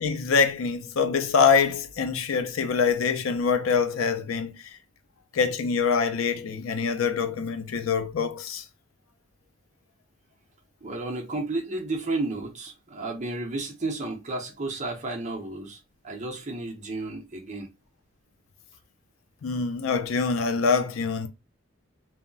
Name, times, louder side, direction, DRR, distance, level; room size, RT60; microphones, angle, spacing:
voice 1, 0.0-4.6 5.3-8.6 19.4-21.3, left 5 dB, 85° left, 0.5 m, -24 dB
voice 2, 10.8-17.7, right 2 dB, 35° right, 0.6 m, -32 dB
2.3 x 2.0 x 3.6 m
head